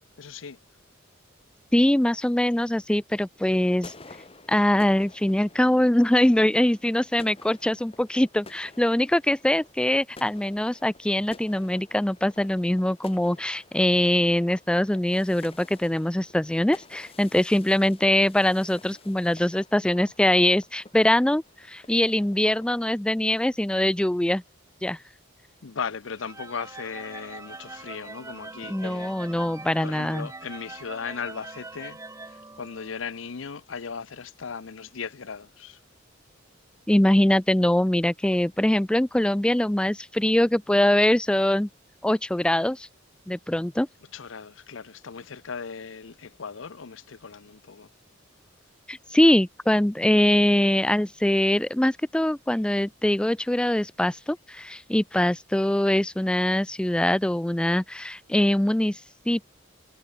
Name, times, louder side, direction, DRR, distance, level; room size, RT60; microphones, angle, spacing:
voice 1, 0.2-0.6 25.6-29.1 29.8-35.8 44.1-47.9, left 6 dB, 75° left, 0.7 m, -37 dB
voice 2, 1.7-3.9 4.5-24.4 24.8-25.0 28.7-30.3 36.9-41.7 42.0-42.9 43.3-43.9 48.9-59.0 59.3-59.5, left 1 dB, 5° left, 0.3 m, -23 dB
sound 1, 3.5-23.0, left 3 dB, 30° left, 1.8 m, -51 dB
sound 2, 26.2-33.2, right 3 dB, 15° right, 0.8 m, -43 dB
head